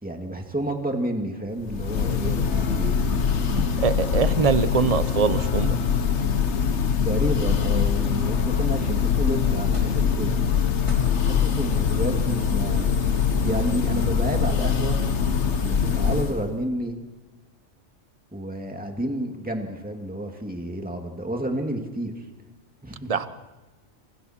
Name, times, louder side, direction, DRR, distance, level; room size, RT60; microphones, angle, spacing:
voice 1, 0.0-2.9 3.3-3.7 7.0-10.4 11.2-12.9 13.2-15.0 15.6-17.0 18.3-22.3 22.8-23.1, right 1 dB, 5° right, 2 dB, 2.3 m, -30 dB
Church bell, 1.6-16.5, left 6 dB, 65° left, 1.4 m, -23 dB
voice 2, 3.8-5.8 23.1-23.3, right 5 dB, 30° right, 12 dB, 1.0 m, -23 dB
sound 1, 9.7-10.0 10.4-10.5 10.9-16.3, equal, 25° left, 5.6 m, -47 dB
27.5 x 27.0 x 4.5 m, 1.2 s
omnidirectional pair, 1.3 m